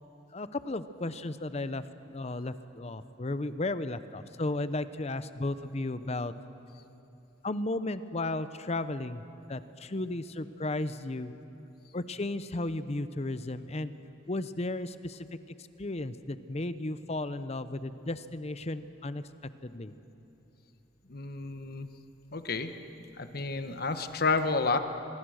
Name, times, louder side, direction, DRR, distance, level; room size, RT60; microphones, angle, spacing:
voice 1, 0.3-1.8 2.1-6.3 7.4-9.2 9.5-11.3 11.9-13.9 14.3-15.3 15.8-19.2 19.6-19.9, left 2 dB, 35° left, 13 dB, 0.7 m, -34 dB
voice 2, 21.1-21.9 22.3-22.7 23.2-24.8, left 4 dB, 55° left, 8 dB, 1.1 m, -30 dB
25.0 x 21.5 x 6.4 m, 2.9 s
head